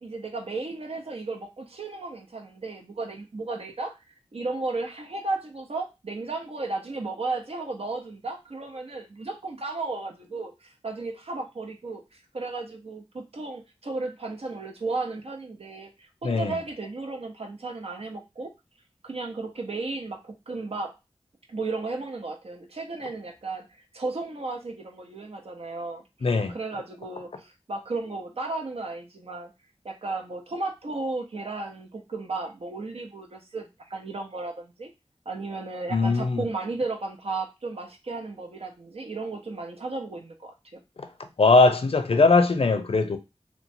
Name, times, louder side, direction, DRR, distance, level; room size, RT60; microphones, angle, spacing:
voice 1, 0.0-3.9 4.3-18.5 19.0-21.0 21.5-23.7 23.9-29.5 29.8-34.9 35.3-40.8, right 3 dB, 70° right, 0.7 m, -34 dB
voice 2, 26.2-26.5 35.9-36.4 41.4-43.2, left 3 dB, 65° left, 0.5 m, -20 dB
2.9 x 2.2 x 2.6 m
wide cardioid pair, 50°, 11 cm